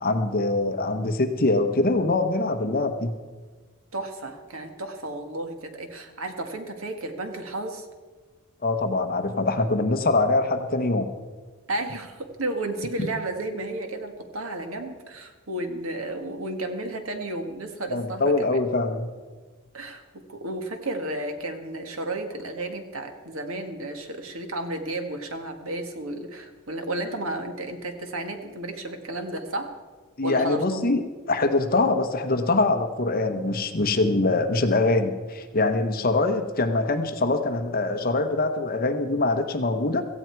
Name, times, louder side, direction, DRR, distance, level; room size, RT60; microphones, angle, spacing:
voice 1, 0.0-3.1 8.6-11.1 17.9-19.1 30.2-31.0 31.3-40.0, left 2 dB, 45° left, 7 dB, 1.0 m, -23 dB
voice 2, 3.9-7.9 11.7-18.5 19.7-20.0 20.3-29.7 30.2-30.9, right 2 dB, 70° right, 5 dB, 1.9 m, -32 dB
17.0 x 15.0 x 4.6 m, 1.4 s
head